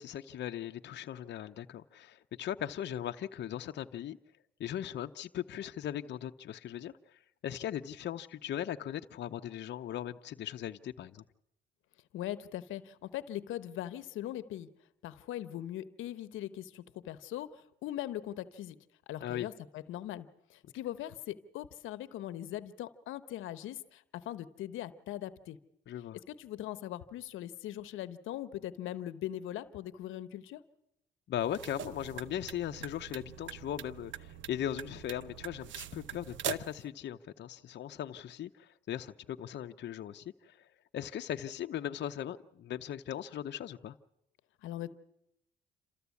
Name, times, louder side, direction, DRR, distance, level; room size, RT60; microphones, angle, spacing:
voice 1, 0.0-4.2 4.6-11.2 19.2-19.5 25.9-26.2 31.3-40.7 40.9-44.0, left 10 dB, 60° left, 0.8 m, -39 dB
voice 2, 12.1-14.7 15.0-18.8 19.1-25.6 26.3-30.6 44.6-44.9, left 13 dB, 90° left, 0.9 m, -40 dB
sound 1, 31.4-36.8, right 11 dB, 70° right, 0.8 m, -43 dB
28.5 x 14.0 x 8.4 m
cardioid pair, 90°, 20 cm